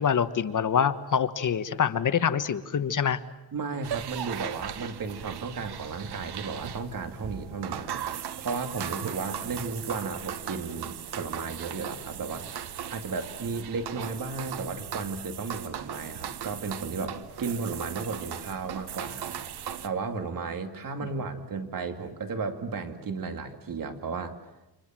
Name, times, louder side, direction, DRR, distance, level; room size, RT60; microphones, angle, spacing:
voice 1, 0.0-3.2, left 7 dB, 50° left, 11 dB, 1.3 m, -25 dB
voice 2, 3.5-12.5 12.9-19.4 19.8-24.3, right 4 dB, 60° right, 6 dB, 2.7 m, -34 dB
sound 1, 3.8-19.9, right 9 dB, 80° right, 1.5 m, -38 dB
29.5 x 26.5 x 7.5 m, 0.98 s
cardioid pair, 110°, 39 cm